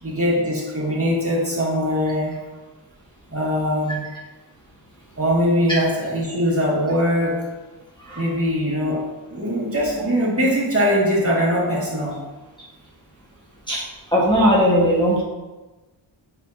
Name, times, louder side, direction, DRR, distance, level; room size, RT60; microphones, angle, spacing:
voice 1, 0.0-2.4 3.3-4.0 5.2-7.5 8.2-12.2, equal, 30° right, -6 dB, 1.9 m, -21 dB
voice 2, 14.1-15.2, equal, 10° left, -7 dB, 1.5 m, -18 dB
8.0 x 5.5 x 2.8 m, 1.2 s
wide cardioid pair, 95°, 47 cm